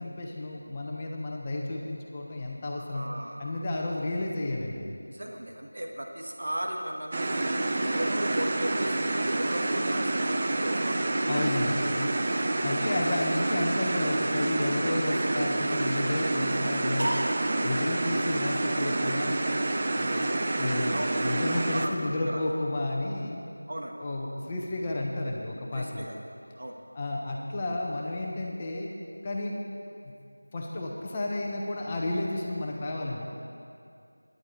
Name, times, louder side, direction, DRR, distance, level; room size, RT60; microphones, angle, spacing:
voice 1, 0.0-3.1 3.4-5.1 11.2-12.1 12.6-17.2 17.6-19.4 20.0-20.3 20.6-23.4 24.0-26.1 26.9-28.9 29.2-29.6 30.5-33.3, left 2 dB, 15° left, -1 dB, 1.0 m, -32 dB
voice 2, 2.8-3.5 5.0-7.4 7.8-11.0 12.8-12.9 17.0-17.4 20.9-21.1 21.7-21.9 22.2-22.4 23.7-23.9 25.7-26.1 26.6-26.8, right 1 dB, 55° right, 1 dB, 1.5 m, -35 dB
sound 1, 7.1-21.9, right 2 dB, 25° right, 0.7 m, -28 dB
19.0 x 10.5 x 4.2 m, 2.5 s
figure-of-eight pair, 175°, 0 cm